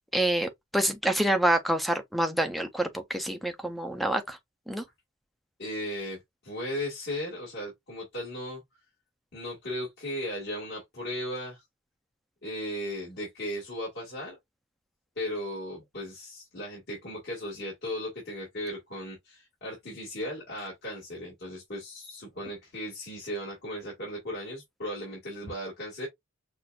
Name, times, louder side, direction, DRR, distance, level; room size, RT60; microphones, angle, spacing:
voice 1, 0.1-4.4 4.7-4.8, right 1 dB, ahead, 0.6 m, -27 dB
voice 2, 5.6-8.6 9.3-11.6 12.4-14.3 15.2-26.1, left 1 dB, 55° left, 2.1 m, -36 dB
6.0 x 2.5 x 2.5 m
head